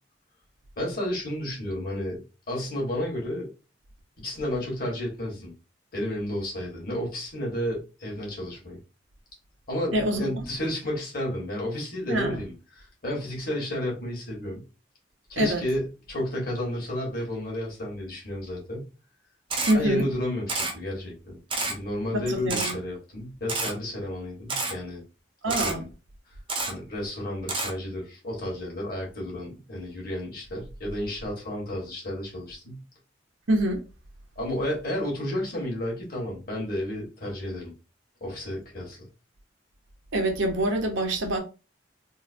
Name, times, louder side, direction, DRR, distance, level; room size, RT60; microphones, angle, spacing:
voice 1, 0.8-3.5 4.2-5.5 5.9-8.8 9.7-14.6 15.3-18.9 19.7-25.0 25.6-25.9 26.7-32.8 34.3-37.7 38.2-39.1, left 1 dB, 50° left, 1.6 m, -32 dB
voice 2, 9.9-10.3 12.1-12.4 15.4-15.6 19.7-20.1 22.1-22.7 25.4-25.8 33.5-33.8 40.1-41.4, right 1 dB, 90° right, 0.9 m, -25 dB
Camera, 19.5-19.7 20.5-20.7 21.5-21.7 22.5-22.7 23.5-23.7 24.5-24.7 25.5-25.7 26.5-26.7 27.5-27.7, right 3 dB, 30° right, 0.6 m, -28 dB
3.7 x 2.1 x 2.6 m
head